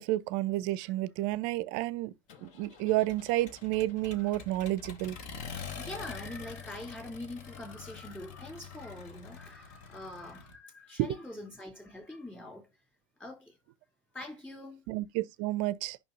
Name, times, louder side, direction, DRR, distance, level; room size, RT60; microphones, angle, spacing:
voice 1, 0.0-2.1 2.4-5.2 14.9-16.0, right 16 dB, 50° right, 0.6 m, -31 dB
Accelerating revving vroom, 2.3-10.6, left 6 dB, 45° left, 1.3 m, -46 dB
voice 2, 5.7-12.7 13.2-13.6 14.1-14.8, left 2 dB, 10° left, 3.0 m, -44 dB
9.1 x 5.6 x 2.6 m
figure-of-eight pair, 80°, 17 cm